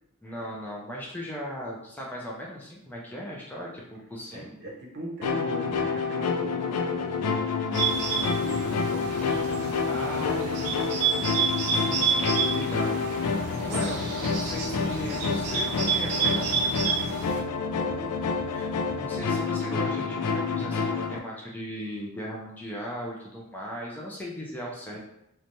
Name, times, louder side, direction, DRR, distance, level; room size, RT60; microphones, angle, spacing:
voice 1, 0.2-4.5 9.9-10.9 11.7-13.3 13.6-16.9 18.5-25.0, equal, 10° left, -4 dB, 0.4 m, -38 dB
voice 2, 4.3-7.7 8.2-9.5 10.1-11.3 17.7-18.2 24.9-25.0, right 1 dB, 50° right, -1 dB, 0.6 m, -41 dB
sound 1, 5.2-21.2, left 5 dB, 85° left, 0.3 m, -28 dB
Bird, 7.7-17.4, right 6 dB, 90° right, 0.5 m, -30 dB
3.0 x 2.2 x 2.6 m, 0.79 s
head